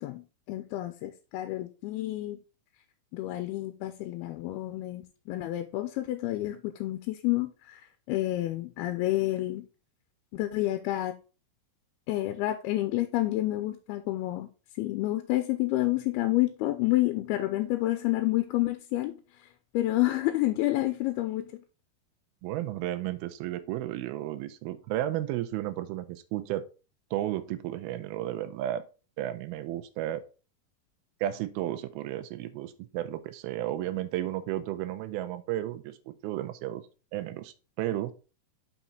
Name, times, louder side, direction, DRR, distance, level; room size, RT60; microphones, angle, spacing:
voice 1, 0.0-2.4 3.1-9.7 10.3-11.1 12.1-14.5 14.8-19.2 19.7-21.6, left 16 dB, 80° left, 2.5 m, -29 dB
voice 2, 22.4-26.6 27.1-28.8 29.2-30.2 31.2-36.8 37.1-38.1, right 13 dB, 80° right, 2.4 m, -33 dB
6.0 x 5.7 x 3.8 m
omnidirectional pair, 4.6 m